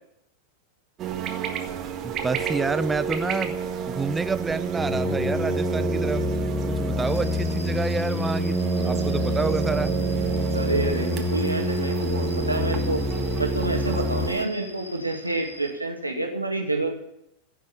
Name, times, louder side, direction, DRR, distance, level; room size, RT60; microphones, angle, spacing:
sound 1, 1.0-14.5, right 8 dB, 30° right, 1.6 m, -29 dB
voice 1, 2.0-3.6 3.9-6.2 6.7-9.9, right 4 dB, 10° right, 14 dB, 0.5 m, -28 dB
sound 2, 4.8-14.3, left 6 dB, 20° left, 0.9 m, -28 dB
sound 3, 7.0-15.7, equal, 85° left, 2.0 m, -44 dB
voice 2, 10.5-13.0 13.4-17.0, right 2 dB, 85° right, 1 dB, 2.2 m, -28 dB
15.5 x 6.2 x 10.0 m, 0.81 s
figure-of-eight pair, 90°, 0 cm